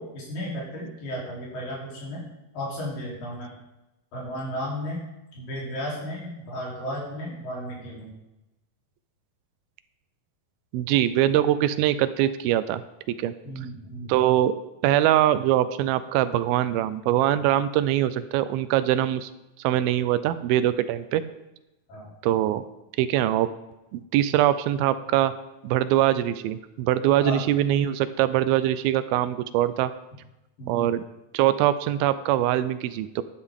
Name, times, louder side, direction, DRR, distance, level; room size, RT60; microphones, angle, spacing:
voice 1, 0.0-2.2 2.5-3.5 4.1-5.1 5.3-8.1 13.4-14.2 21.9-22.1 27.2-27.4 30.6-31.0, equal, 65° left, -5 dB, 5.0 m, -34 dB
voice 2, 10.7-12.8 13.2-13.3 14.1-14.5 14.8-19.3 19.6-21.2 22.2-22.6 23.0-23.5 23.9-25.3 25.6-29.9 30.7-31.0 31.3-33.2, right 12 dB, 85° right, 13 dB, 2.4 m, -23 dB
11.5 x 10.0 x 3.6 m, 0.96 s
omnidirectional pair, 4.3 m